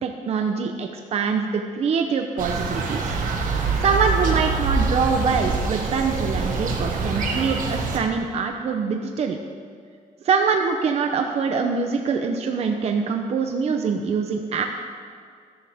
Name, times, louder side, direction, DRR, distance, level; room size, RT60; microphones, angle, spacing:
voice 1, 0.0-3.0 3.5-9.4 10.2-14.7, right 5 dB, 50° right, 4 dB, 0.7 m, -24 dB
sound 1, 2.4-8.0, right 4 dB, 85° right, 1.6 m, -25 dB
13.5 x 12.0 x 3.5 m, 2.2 s
wide cardioid pair, 165°, 14 cm